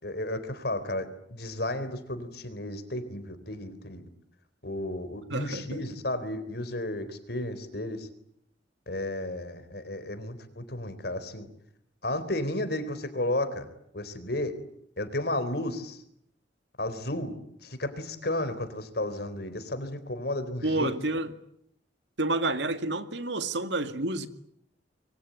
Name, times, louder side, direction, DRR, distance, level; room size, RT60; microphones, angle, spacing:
voice 1, 0.0-4.0 4.6-8.1 8.9-11.5 12.0-13.7 13.9-14.5 15.0-16.0 16.8-17.3 17.6-20.9, left 1 dB, 60° left, 11 dB, 4.0 m, -33 dB
voice 2, 5.3-5.8 20.6-21.3 22.2-24.3, right 2 dB, 75° right, 9 dB, 2.2 m, -29 dB
26.0 x 24.0 x 9.3 m, 0.72 s
head